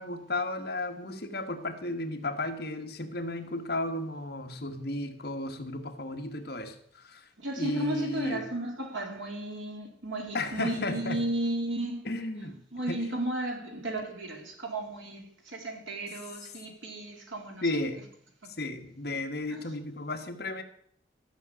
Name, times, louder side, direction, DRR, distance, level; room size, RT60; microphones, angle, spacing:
voice 1, 0.0-7.3 7.6-8.5 10.3-11.2 12.0-12.6 12.9-13.0 17.6-18.0 18.6-20.6, left 2 dB, 55° left, 1.5 m, -34 dB
voice 2, 7.4-12.1 12.7-17.7 19.5-19.6, right 1 dB, 80° right, 3.2 m, -34 dB
14.0 x 6.1 x 8.3 m
head